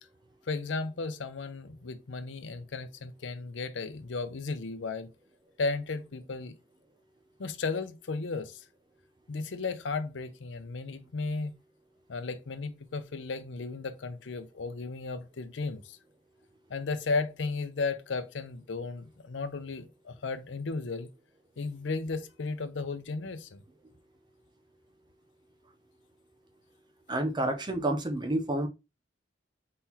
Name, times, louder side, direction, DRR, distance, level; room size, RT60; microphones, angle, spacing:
voice 1, 0.5-5.1 5.6-6.5 7.4-8.6 9.3-11.5 12.1-16.0 16.7-21.1 21.6-23.6, left 3 dB, 85° left, 0.6 m, -34 dB
voice 2, 27.1-28.7, right 1 dB, 25° right, 0.6 m, -29 dB
4.2 x 3.8 x 2.8 m
head